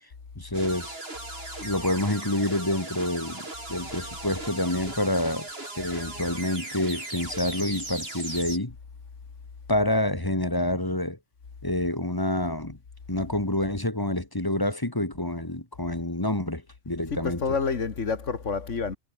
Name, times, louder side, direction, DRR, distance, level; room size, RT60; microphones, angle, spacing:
voice 1, 0.4-1.0 1.6-5.5 5.8-8.7 9.7-11.2 11.6-12.8 13.1-17.4, left 1 dB, 20° left, 2.1 m, -27 dB
sound 1, 0.5-8.6, right 2 dB, 55° right, 4.9 m, -38 dB
voice 2, 17.1-19.0, left 5 dB, 90° left, 2.2 m, -28 dB
omnidirectional pair, 1.2 m